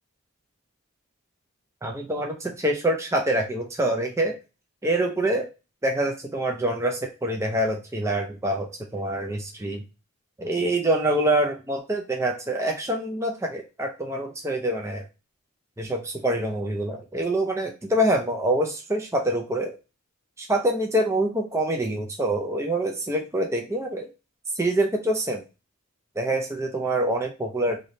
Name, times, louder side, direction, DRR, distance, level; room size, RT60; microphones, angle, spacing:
voice 1, 1.8-4.4 4.8-5.5 5.8-9.8 10.4-15.0 15.8-19.8 20.4-24.1 24.5-25.4 26.2-27.8, right 1 dB, 15° right, 2 dB, 0.4 m, -25 dB
3.3 x 2.7 x 3.9 m, 0.30 s
head